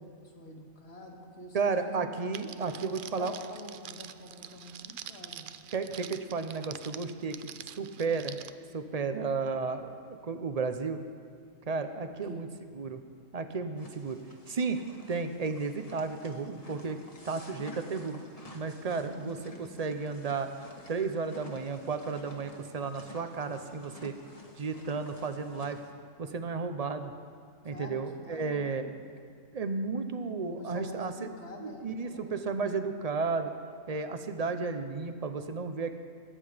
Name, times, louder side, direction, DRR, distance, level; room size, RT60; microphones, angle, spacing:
voice 1, 0.0-2.1 2.6-5.5 9.0-9.3 12.1-12.5 19.0-19.4 27.6-29.0 30.4-32.4, left 1 dB, 50° left, 1 dB, 1.8 m, -47 dB
voice 2, 1.5-3.3 5.7-7.5 7.8-8.4 8.7-11.0 11.7-12.5 12.8-13.0 13.3-14.2 14.5-14.8 15.1-17.0 17.2-18.2 18.5-20.5 20.9-24.2 24.6-25.8 26.2-27.1 27.6-28.8 29.5-31.3 31.6-33.5 33.9-35.9, right 4 dB, 35° right, 8 dB, 0.7 m, -33 dB
Crackle, 2.3-8.5, right 9 dB, 75° right, 0.4 m, -46 dB
sound 1, 13.8-25.9, left 1 dB, 30° left, 1.3 m, -51 dB
22.0 x 8.8 x 5.1 m, 2.1 s
omnidirectional pair, 1.4 m